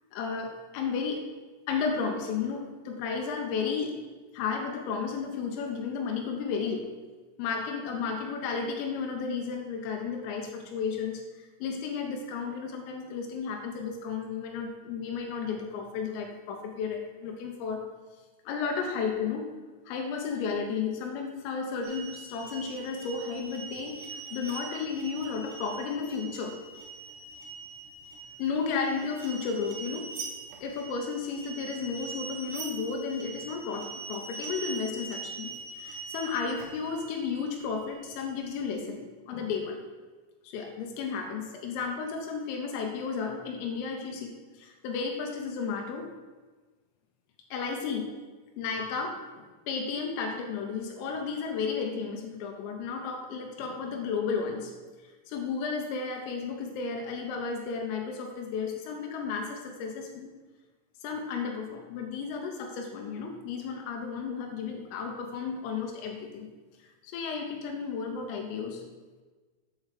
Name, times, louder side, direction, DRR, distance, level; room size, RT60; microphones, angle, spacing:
voice 1, 0.1-1.2 1.7-4.0 4.3-6.9 7.4-17.8 18.5-19.5 19.9-26.6 28.4-30.1 30.6-39.8 40.4-46.1 47.5-48.1 48.6-54.7 55.3-60.3 61.0-66.5 66.8-68.8, left 5 dB, 80° left, 2 dB, 3.4 m, -33 dB
sound 1, 21.8-38.7, right 4 dB, 75° right, 2.7 m, -43 dB
8.2 x 4.5 x 6.4 m, 1.3 s
omnidirectional pair, 5.9 m